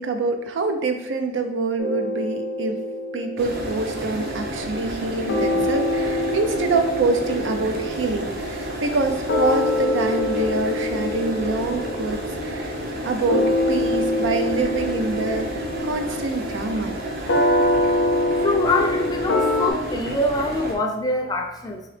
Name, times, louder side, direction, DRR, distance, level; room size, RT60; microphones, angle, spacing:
voice 1, 0.0-2.8 3.1-12.7 13.0-17.0, right 3 dB, 90° right, 6 dB, 0.5 m, -25 dB
sound 1, 1.8-5.0 5.3-19.7, left 1 dB, 75° left, 0.5 m, -25 dB
sound 2, 3.4-20.7, right 1 dB, 55° right, 0.7 m, -31 dB
voice 2, 18.4-21.8, left 2 dB, 20° left, 3 dB, 0.4 m, -24 dB
3.9 x 2.8 x 3.2 m, 0.97 s
head